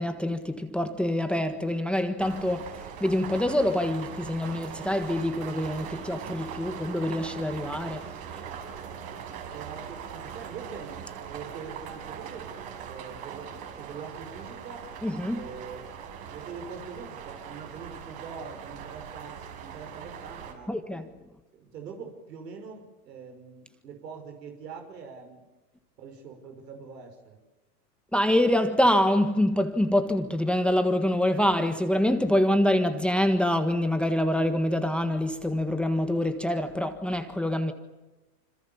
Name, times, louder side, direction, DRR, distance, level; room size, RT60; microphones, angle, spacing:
voice 1, 0.0-8.4 15.0-15.5 20.7-21.1 28.1-37.7, left 1 dB, ahead, 1.5 m, -25 dB
sound 1, 2.2-20.5, right 7 dB, 55° right, 6.4 m, -41 dB
voice 2, 9.5-12.5 12.8-14.9 15.3-15.9 16.3-20.8 21.5-25.5 26.0-27.4, right 5 dB, 85° right, 5.8 m, -43 dB
27.0 x 26.0 x 7.1 m
supercardioid pair, 130°, 48 cm